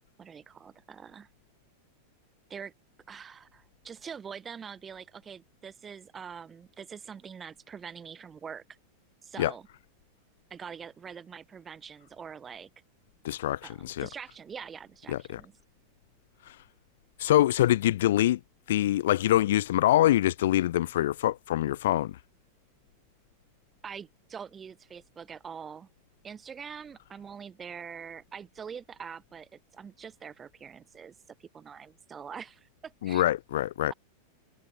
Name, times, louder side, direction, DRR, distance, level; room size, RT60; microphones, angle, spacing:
voice 1, 0.2-1.3 2.5-2.7 3.1-8.8 9.2-9.7 10.5-12.7 13.6-15.5 23.8-25.9 26.2-33.2, right 7 dB, 20° right, 7.5 m, -44 dB
voice 2, 13.2-14.1 15.1-15.4 17.2-18.4 18.7-22.1 33.0-33.9, left 13 dB, 55° left, 1.0 m, -25 dB
figure-of-eight pair, 90°, 0 cm